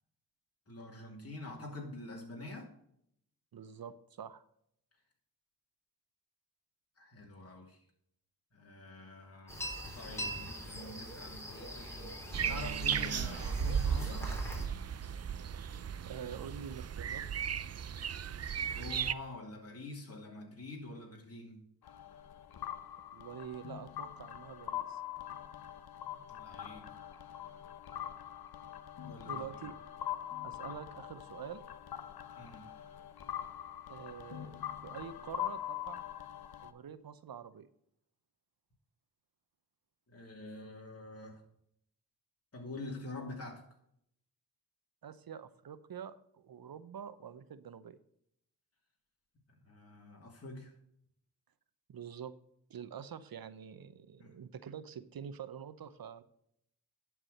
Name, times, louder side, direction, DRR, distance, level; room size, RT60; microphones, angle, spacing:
voice 1, 0.7-2.7 7.0-7.8 8.5-9.6 9.9-12.2 12.5-14.3 18.7-21.6 26.0-26.9 29.0-29.4 30.7-30.8 32.3-32.7 40.1-41.4 42.5-43.7 49.6-50.7 54.2-54.3, left 2 dB, 40° left, -1 dB, 2.8 m, -46 dB
voice 2, 3.5-4.4 16.1-17.2 23.1-25.0 29.2-29.8 30.4-31.6 33.9-36.0 36.6-37.7 45.0-48.0 51.9-52.3 52.7-56.2, right 8 dB, 65° right, 14 dB, 0.8 m, -46 dB
sound 1, 9.5-14.7, equal, 5° left, 3.9 m, -42 dB
sound 2, 12.3-19.1, right 8 dB, 40° right, 0.5 m, -35 dB
sound 3, 21.8-36.7, left 11 dB, 75° left, 0.8 m, -43 dB
11.5 x 4.8 x 6.4 m, 0.72 s
cardioid pair, 45°, 38 cm